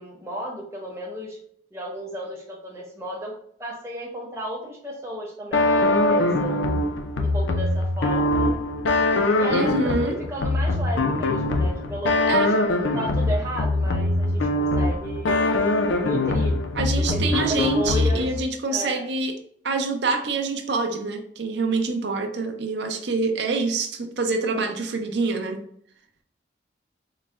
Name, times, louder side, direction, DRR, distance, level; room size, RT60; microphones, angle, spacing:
voice 1, 0.0-1.4 1.7-3.3 3.6-6.6 7.2-8.6 9.4-12.5 12.7-15.5 16.0-16.6 16.9-18.4 18.7-19.1, equal, 15° right, -2 dB, 0.7 m, -33 dB
sound 1, 5.5-18.4, left 2 dB, 70° left, 0.4 m, -23 dB
voice 2, 9.5-10.2 12.3-12.5 16.7-19.3 19.6-25.6, right 3 dB, 60° right, 4 dB, 0.5 m, -26 dB
3.9 x 2.1 x 3.3 m, 0.65 s
head